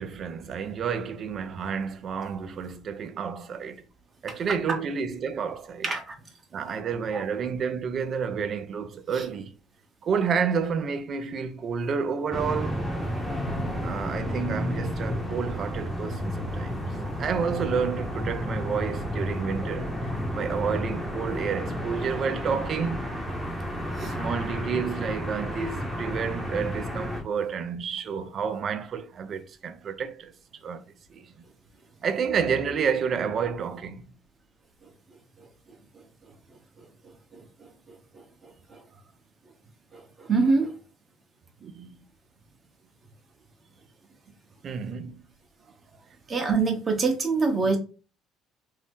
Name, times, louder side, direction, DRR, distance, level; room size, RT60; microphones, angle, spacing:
voice 1, 0.0-3.8 4.2-5.9 6.5-9.5 10.0-12.9 13.8-23.0 24.0-30.3 30.6-30.8 31.1-31.3 32.0-34.1 41.6-42.0 44.6-45.3, right 6 dB, 50° right, 0.4 m, -30 dB
voice 2, 5.8-6.1 7.1-7.3 9.1-9.2 24.0-24.1 35.4-35.5 37.3-38.0 38.4-38.8 39.9-40.7 46.3-47.8, right 4 dB, 35° right, 0.8 m, -26 dB
sound 1, 12.3-27.2, equal, ahead, 0.8 m, -31 dB
2.7 x 2.0 x 3.5 m
supercardioid pair, 85°, 0 cm